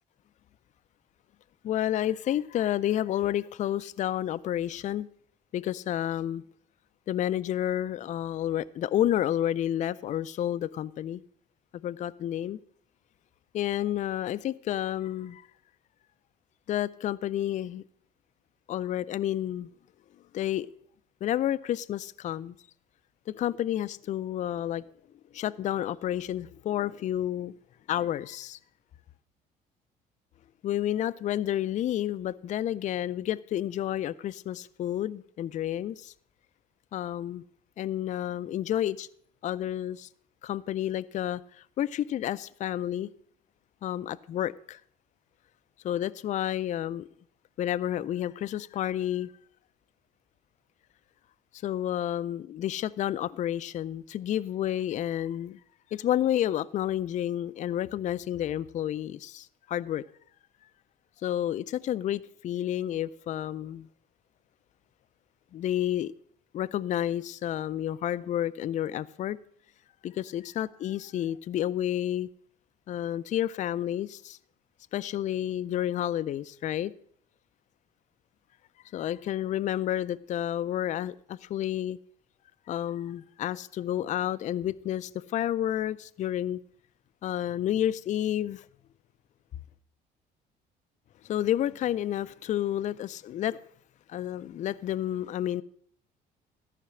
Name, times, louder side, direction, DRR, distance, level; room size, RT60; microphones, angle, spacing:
voice 1, 1.6-5.1 5.5-6.4 7.1-11.2 11.8-12.6 13.5-15.5 16.7-17.8 18.7-19.7 20.3-20.7 21.2-22.6 23.3-24.8 25.3-27.5 27.9-28.6 30.6-36.1 36.9-37.4 37.8-39.1 39.4-40.1 40.4-43.1 43.8-44.8 45.8-47.1 47.6-49.3 51.6-55.6 55.9-60.0 61.2-63.9 65.5-66.1 66.5-69.4 70.0-72.3 72.9-74.4 74.9-76.9 78.9-82.0 82.7-86.6 87.2-88.6 91.2-93.6 94.1-95.6, left 11 dB, 45° left, 0.4 m, -30 dB
13.5 x 5.8 x 7.6 m
cardioid pair, 110°, 17 cm